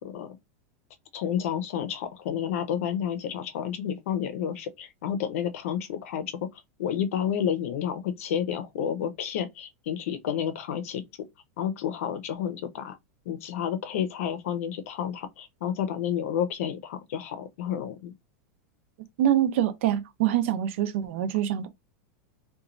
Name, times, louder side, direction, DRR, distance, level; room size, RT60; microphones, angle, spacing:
voice 1, 1.1-11.0 11.6-13.0 13.3-18.1, left 9 dB, 70° left, 0.6 m, -30 dB
voice 2, 19.2-21.7, right 11 dB, 55° right, 0.5 m, -25 dB
3.0 x 2.2 x 2.5 m
supercardioid pair, 170°, 8 cm